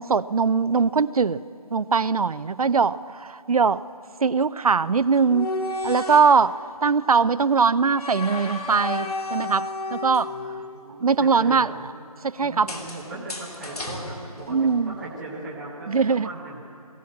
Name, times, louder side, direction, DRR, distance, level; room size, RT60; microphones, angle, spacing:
voice 1, 0.0-1.4 1.7-3.8 4.2-5.5 5.8-6.5 6.8-10.3 11.0-11.7 12.2-12.7 14.5-15.0 15.9-16.3, right 5 dB, 70° right, 16 dB, 0.5 m, -21 dB
sound 1, 5.1-6.4 7.9-10.9 12.7-14.9, left 2 dB, 75° left, 2.8 m, -32 dB
voice 2, 10.2-11.8 12.4-16.6, right 2 dB, ahead, -10 dB, 0.6 m, -38 dB
21.0 x 16.0 x 8.5 m, 2.7 s
figure-of-eight pair, 170°, 19 cm